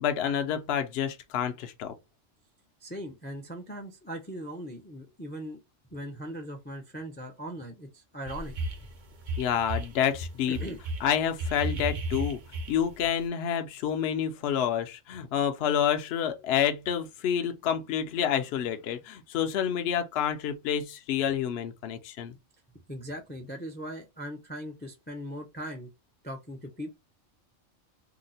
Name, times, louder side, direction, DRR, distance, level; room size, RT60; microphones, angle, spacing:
voice 1, 0.0-1.9 9.4-10.6 11.0-12.4 12.7-22.3, left 9 dB, 65° left, 0.7 m, -28 dB
voice 2, 2.8-5.6 5.9-8.6 10.5-10.8 22.9-25.9 26.2-27.0, equal, 15° left, 0.4 m, -39 dB
sound 1, 8.3-8.9 9.2-10.0 10.5-13.0, right 2 dB, 50° right, 0.7 m, -33 dB
2.9 x 2.0 x 3.9 m
omnidirectional pair, 1.3 m